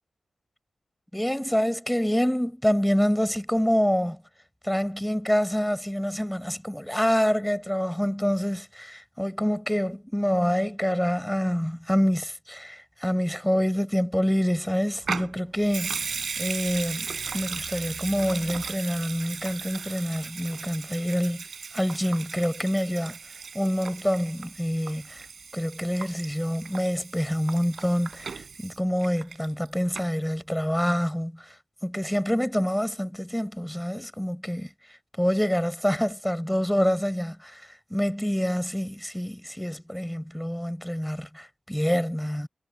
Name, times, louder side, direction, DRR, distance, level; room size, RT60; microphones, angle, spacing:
voice 1, 1.1-4.2 4.6-21.4 21.7-23.2 23.5-25.2 25.5-31.6 31.8-34.7 35.2-42.5, equal, 5° left, 6.1 m, -26 dB
Water tap faucet / Sink (filling or washing) / Liquid, 15.0-29.7 30.0-30.1, right 5 dB, 70° right, 7.4 m, -37 dB
cardioid pair, 75°, 0 cm